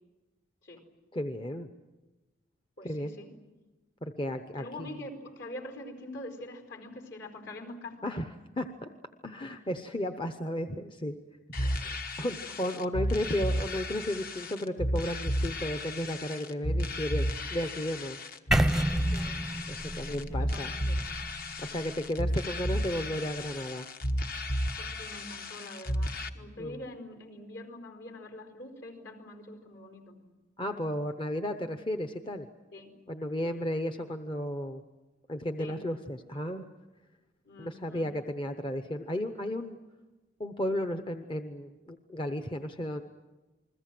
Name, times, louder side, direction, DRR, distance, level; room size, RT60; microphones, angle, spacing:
voice 1, 1.1-1.7 2.8-3.1 4.0-4.9 8.0-8.3 8.6-8.9 9.2-11.2 11.5-18.2 19.7-20.7 21.6-23.9 26.6-26.8 30.6-32.5 33.1-34.8 35.3-36.6 37.6-39.8 40.4-43.0, left 1 dB, 25° left, 7 dB, 0.9 m, -34 dB
voice 2, 2.8-3.3 4.5-8.1 12.4-12.6 19.1-19.4 20.1-21.0 24.8-30.2 32.7-32.9 33.4-33.5 35.6-35.8 37.4-38.1, left 1 dB, 65° left, 5 dB, 4.8 m, -44 dB
sound 1, 11.5-26.3, equal, 50° left, 1.3 m, -33 dB
sound 2, 18.5-22.5, right 1 dB, ahead, 0.7 m, -31 dB
29.0 x 21.5 x 7.7 m, 1.2 s
head